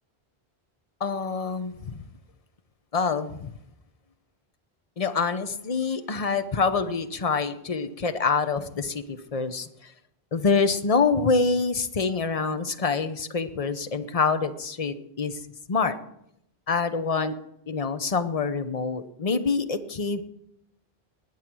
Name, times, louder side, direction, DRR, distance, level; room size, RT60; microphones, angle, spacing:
voice 1, 1.0-2.0 2.9-3.5 5.0-9.7 10.3-15.4 15.7-16.0 16.7-17.3 17.7-20.2, left 4 dB, 35° left, 10 dB, 0.9 m, -26 dB
20.0 x 8.7 x 6.2 m, 0.79 s
omnidirectional pair, 1.0 m